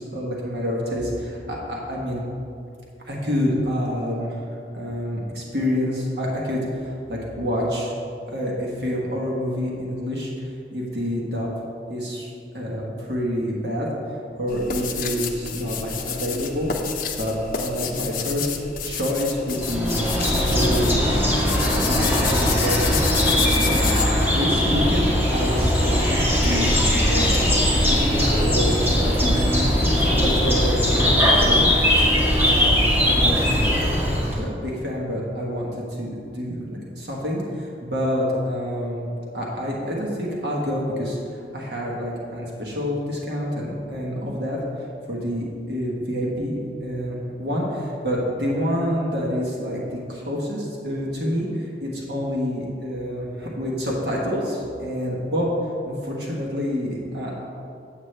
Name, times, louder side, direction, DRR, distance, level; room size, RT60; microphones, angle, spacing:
voice 1, 0.0-2.2 3.0-4.4 4.7-7.9 8.3-11.5 11.9-12.3 12.5-13.9 14.4-16.7 17.2-18.5 18.8-20.0 20.5-23.8 24.3-29.7 30.1-31.7 32.4-33.8 34.3-39.1 39.3-44.6 45.1-49.8 50.1-55.5 55.8-57.4, equal, 65° right, -4 dB, 1.4 m, -27 dB
sound 1, 14.5-24.0, left 7 dB, 50° left, 0.6 m, -30 dB
sound 2, 19.5-34.4, equal, 10° right, 1.7 m, -20 dB
8.1 x 7.9 x 3.3 m, 2.5 s
head